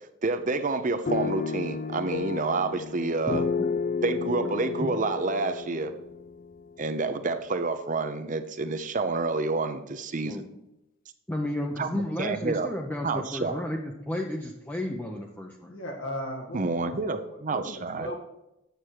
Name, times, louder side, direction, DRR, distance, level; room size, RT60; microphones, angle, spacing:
voice 1, 0.2-3.4 4.0-5.9 6.8-10.4 11.8-12.7 13.0-13.5 16.5-18.1, right 3 dB, 40° right, 9 dB, 0.7 m, -29 dB
sound 1, 1.1-7.1, left 5 dB, 45° left, 0.4 m, -32 dB
voice 2, 3.3-3.7 4.8-4.9 10.2-10.6 11.3-15.7, left 1 dB, 10° left, 0 dB, 0.6 m, -33 dB
voice 3, 15.7-17.2 17.5-18.2, equal, 90° left, 0 dB, 1.8 m, -37 dB
8.9 x 6.7 x 4.6 m, 0.91 s
head